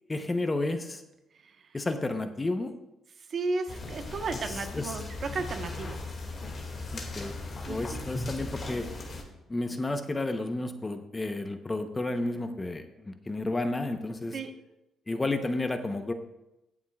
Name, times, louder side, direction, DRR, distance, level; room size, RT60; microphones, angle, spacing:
voice 1, 0.1-1.0 1.7-2.7 4.7-5.0 6.9-7.4 7.7-8.9 9.5-14.4 15.1-16.1, left 2 dB, 20° left, 7 dB, 0.9 m, -31 dB
voice 2, 3.2-6.0 7.7-8.0 14.3-14.5, right 3 dB, 50° right, 6 dB, 1.2 m, -34 dB
sound 1, 3.7-9.2, left 2 dB, 40° left, 2.2 m, -38 dB
22.0 x 7.3 x 2.4 m, 0.92 s
cardioid pair, 90°, 0 cm